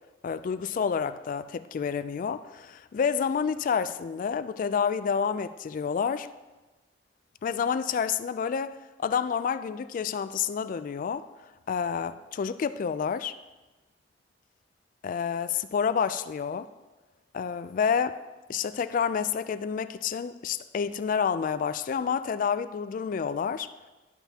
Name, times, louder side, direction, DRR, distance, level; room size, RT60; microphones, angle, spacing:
voice 1, 0.2-6.3 7.4-11.3 11.7-13.3 15.0-16.7 17.3-18.2 18.5-23.7, left 6 dB, 50° left, 14 dB, 0.3 m, -29 dB
12.0 x 5.7 x 2.8 m, 1.2 s
head